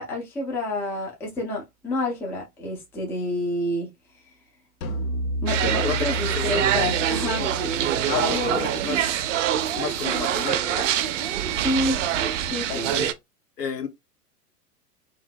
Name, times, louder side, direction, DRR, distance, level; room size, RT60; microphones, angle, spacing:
voice 1, 0.0-3.9 5.4-7.5 8.1-8.7 11.6-12.1 12.5-13.0, left 1 dB, 5° left, 0.4 m, -28 dB
sound 1, 4.8-10.2, equal, 60° left, 0.6 m, -32 dB
sound 2, 5.5-13.1, right 10 dB, 50° right, 0.5 m, -25 dB
voice 2, 5.8-6.6 7.4-7.8 8.1-9.2 9.7-10.9 12.7-13.1 13.6-13.9, left 6 dB, 80° left, 0.9 m, -32 dB
2.7 x 2.3 x 3.3 m
figure-of-eight pair, 100°, 48 cm